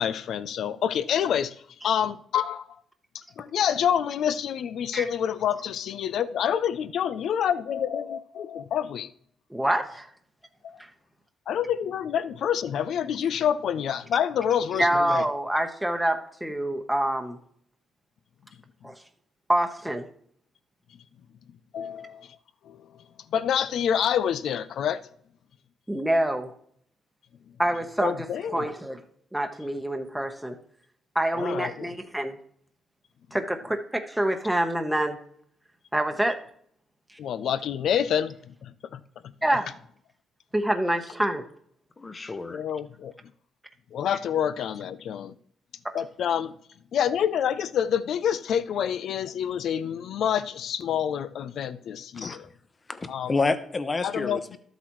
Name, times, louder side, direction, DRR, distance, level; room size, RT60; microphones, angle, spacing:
voice 1, 0.0-1.5 1.8-2.7 3.4-9.1 10.6-10.8 11.5-15.2 21.7-22.3 22.7-22.8 23.3-25.0 28.0-28.7 31.3-31.9 37.2-38.3 38.6-39.0 42.5-43.1 43.9-45.3 45.9-46.5 46.9-52.5 53.1-53.3 54.0-54.6, left 9 dB, 70° left, 0.5 m, -27 dB
voice 2, 9.5-10.1 14.7-17.4 18.8-19.0 19.5-20.1 25.9-26.5 27.6-28.3 28.5-29.0 29.3-30.6 31.1-32.4 33.3-35.2 35.9-36.4 37.1-37.2 39.4-39.7 40.5-41.4 45.8-45.9, right 1 dB, 5° right, 1.0 m, -26 dB
voice 3, 42.0-42.6 52.2-52.4 52.9-54.4, left 3 dB, 30° left, 0.9 m, -29 dB
12.5 x 8.1 x 3.1 m
cardioid pair, 90°, 0 cm